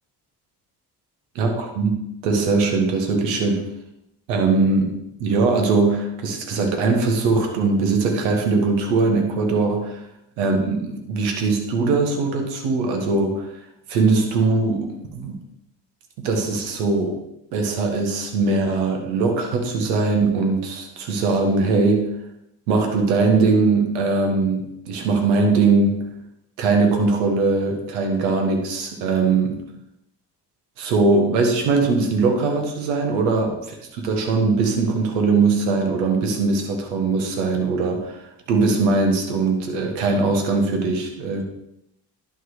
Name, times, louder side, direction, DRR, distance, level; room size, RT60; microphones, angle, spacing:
voice 1, 1.3-3.6 4.3-10.0 10.4-13.5 13.9-15.4 16.2-17.2 17.5-22.1 22.7-26.0 26.6-29.6 30.8-38.2 38.5-41.4, right 3 dB, 80° right, 4 dB, 1.6 m, -21 dB
11.0 x 4.5 x 5.0 m, 0.80 s
hypercardioid pair, 50°, 50 cm